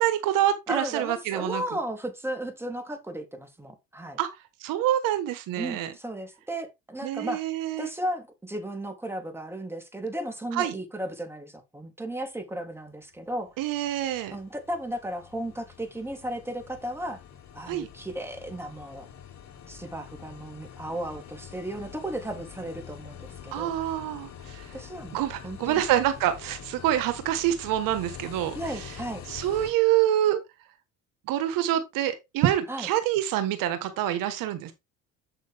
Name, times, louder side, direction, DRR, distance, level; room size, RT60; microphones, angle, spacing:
voice 1, 0.0-1.6 4.2-4.3 4.6-5.9 7.0-7.9 10.5-10.7 13.6-14.3 17.7-17.9 23.5-24.7 25.1-28.9 29.3-30.4 31.3-34.7, right 12 dB, 70° right, 1.3 m, -26 dB
voice 2, 0.7-4.2 5.6-7.4 7.8-13.5 14.3-17.2 17.5-19.1 19.7-23.7 24.7-25.8 28.5-29.2 32.7-32.9, right 1 dB, 5° right, 3.0 m, -35 dB
sound 1, 13.0-29.7, left 9 dB, 55° left, 3.0 m, -45 dB
7.7 x 6.4 x 3.5 m
supercardioid pair, 85°, 34 cm